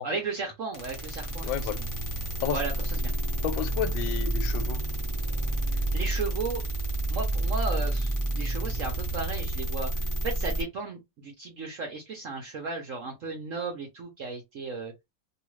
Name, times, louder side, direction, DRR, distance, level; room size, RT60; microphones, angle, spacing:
voice 1, 0.0-1.7 2.5-3.1 5.9-6.6 7.1-9.9 10.2-14.9, right 4 dB, 65° right, 0.8 m, -35 dB
sound 1, 0.7-10.6, right 2 dB, 20° left, 0.4 m, -29 dB
voice 2, 1.4-1.8 2.4-2.6 3.4-4.8, left 9 dB, 90° left, 1.4 m, -31 dB
2.9 x 2.4 x 3.1 m
omnidirectional pair, 2.1 m